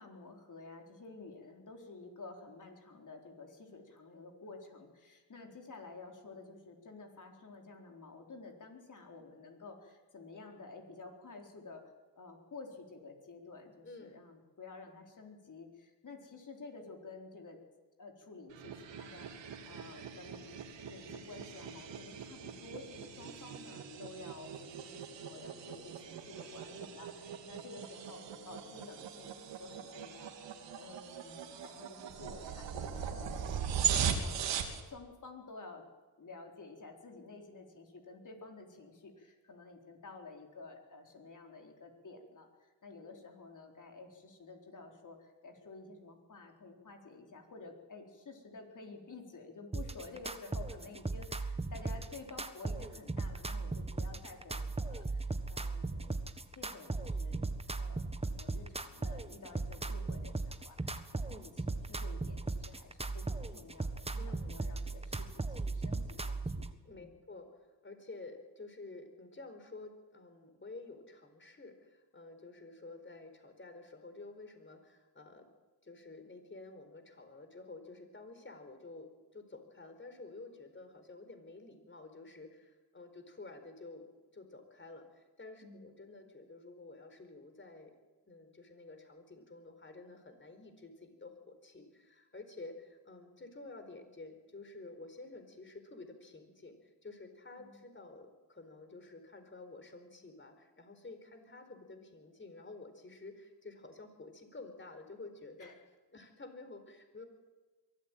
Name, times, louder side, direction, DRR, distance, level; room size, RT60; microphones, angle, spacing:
voice 1, 0.0-11.8 12.1-17.6 18.0-34.5 34.8-35.8 36.2-57.5 57.8-61.0 61.3-66.7 66.9-67.1 85.6-85.8 97.6-97.8 105.6-105.7, left 3 dB, 45° left, 2 dB, 4.3 m, -51 dB
voice 2, 13.8-14.2 64.2-64.5 66.8-75.5 75.8-87.9 88.3-105.7 106.1-107.3, left 3 dB, 25° left, 7 dB, 4.5 m, -51 dB
sound 1, 18.5-34.8, right 8 dB, 80° right, 2.8 m, -40 dB
sound 2, 49.7-66.7, right 3 dB, 15° right, 1.5 m, -37 dB
23.0 x 13.5 x 9.2 m, 1.3 s
cardioid pair, 80°, 43 cm